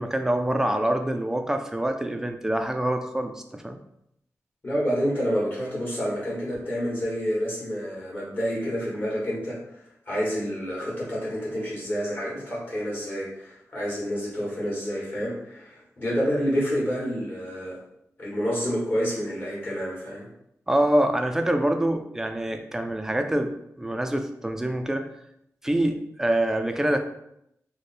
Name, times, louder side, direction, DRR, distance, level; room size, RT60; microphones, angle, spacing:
voice 1, 0.0-3.8 20.7-23.5 23.8-25.0 25.6-27.0, right 1 dB, 10° right, 5 dB, 0.3 m, -25 dB
voice 2, 4.6-17.8 18.2-20.3, equal, 35° left, -5 dB, 1.4 m, -28 dB
3.3 x 2.1 x 4.1 m, 0.77 s
wide cardioid pair, 140°, 6 cm